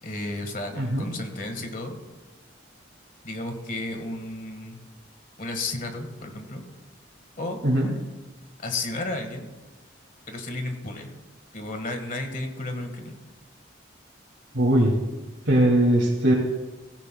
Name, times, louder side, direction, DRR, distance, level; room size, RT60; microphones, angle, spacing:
voice 1, 0.0-2.0 3.2-4.8 5.4-6.6 7.4-7.6 8.6-9.5 10.3-11.1 11.5-13.2, left 2 dB, 45° left, 5 dB, 1.6 m, -33 dB
voice 2, 0.7-1.0 7.6-7.9 14.5-14.9 15.5-16.3, right 1 dB, 70° right, -4 dB, 2.4 m, -20 dB
17.0 x 16.0 x 2.3 m, 1.2 s
head